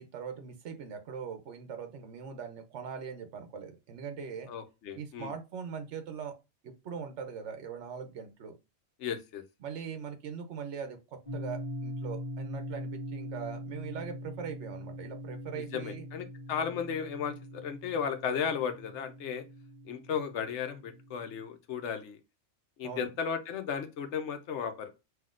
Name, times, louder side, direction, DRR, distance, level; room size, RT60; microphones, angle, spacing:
voice 1, 0.0-4.5 4.9-6.3 6.6-8.5 9.6-16.0 22.8-23.1, right 6 dB, 75° right, 1.0 m, -41 dB
voice 2, 4.5-5.3 9.0-9.4 15.7-19.4 19.9-22.2 22.8-24.9, left 7 dB, 75° left, 1.0 m, -35 dB
sound 1, 11.3-21.4, equal, 40° right, 1.6 m, -42 dB
5.7 x 2.8 x 2.4 m
omnidirectional pair, 1.2 m